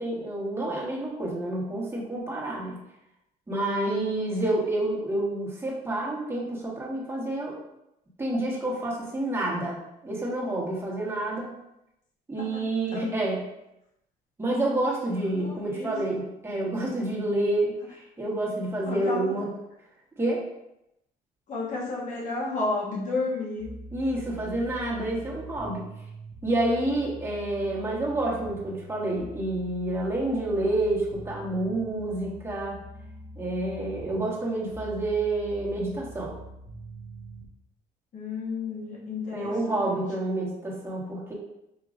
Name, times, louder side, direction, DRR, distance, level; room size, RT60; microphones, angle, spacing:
voice 1, 0.0-2.8 3.5-7.6 8.2-9.8 10.0-11.5 12.3-13.4 14.4-19.5 20.2-20.4 23.9-25.8 26.4-32.8 33.4-36.3 39.3-41.3, right 1 dB, 15° right, -5 dB, 1.4 m, -28 dB
voice 2, 15.4-15.9 18.8-19.3 21.5-23.7 38.1-40.0, left 3 dB, 45° left, -4 dB, 1.2 m, -32 dB
sound 1, 23.6-37.5, right 1 dB, 40° right, 0.6 m, -44 dB
6.1 x 2.8 x 2.5 m, 0.86 s
cardioid pair, 110°, 17 cm